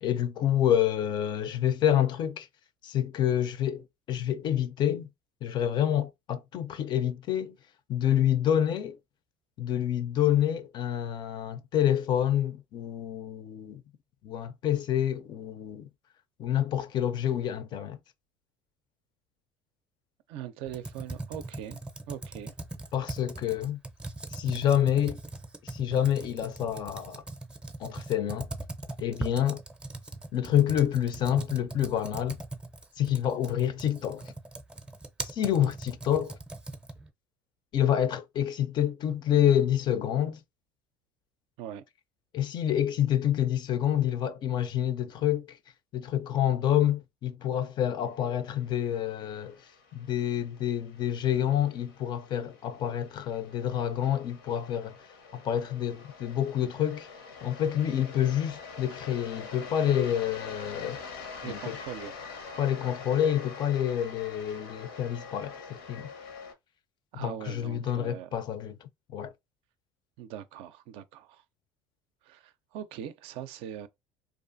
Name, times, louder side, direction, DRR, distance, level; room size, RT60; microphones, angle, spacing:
voice 1, 0.0-2.5 2.8-5.1 5.4-7.5 7.9-9.0 9.6-13.8 14.2-15.9 16.4-18.0 22.9-23.8 24.3-25.2 25.6-27.2 27.8-28.5 29.0-29.6 30.3-32.4 33.0-34.3 35.2-36.4 37.7-40.4 42.3-45.6 45.9-49.6 49.9-55.0 55.3-57.1 57.4-61.0 61.4-61.8 62.6-66.1 67.1-69.3, left 10 dB, 45° left, 0.4 m, -28 dB
voice 2, 20.3-21.8 22.1-22.5 41.6-41.8 61.4-62.1 67.1-68.3 70.2-71.4 72.2-73.9, right 10 dB, 65° right, 0.4 m, -41 dB
Computer keyboard, 20.7-37.1, right 2 dB, 10° right, 0.5 m, -40 dB
sound 1, 48.2-66.5, left 5 dB, 85° left, 0.7 m, -45 dB
2.4 x 2.4 x 2.5 m
supercardioid pair, 90°, 11 cm